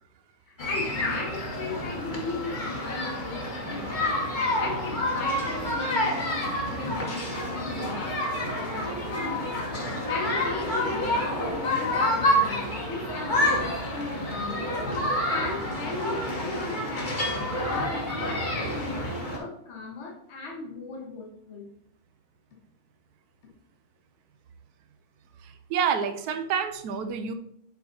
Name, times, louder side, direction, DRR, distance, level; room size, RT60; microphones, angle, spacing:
voice 1, 0.5-4.0 4.6-8.2 8.5-9.3 10.1-14.7 15.3-21.7, left 3 dB, 50° left, -1 dB, 1.4 m, -37 dB
sound 1, 0.6-19.4, left 1 dB, 35° left, 1.3 m, -28 dB
voice 2, 25.4-27.3, right 7 dB, 90° right, 9 dB, 1.2 m, -28 dB
6.6 x 4.2 x 3.9 m, 0.71 s
omnidirectional pair, 1.6 m